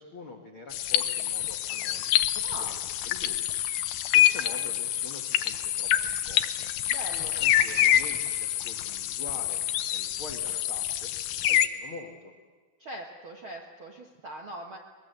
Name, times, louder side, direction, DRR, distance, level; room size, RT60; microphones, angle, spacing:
voice 1, 0.0-2.8 3.0-3.4 4.1-6.7 7.3-11.1 11.5-12.3, left 3 dB, 65° left, 4 dB, 1.2 m, -45 dB
sound 1, 0.7-11.7, left 12 dB, 85° left, 1.9 m, -26 dB
voice 2, 6.9-7.4 12.8-14.8, right 1 dB, 80° right, 1 dB, 1.1 m, -41 dB
22.5 x 21.5 x 8.1 m, 1.5 s
omnidirectional pair, 5.1 m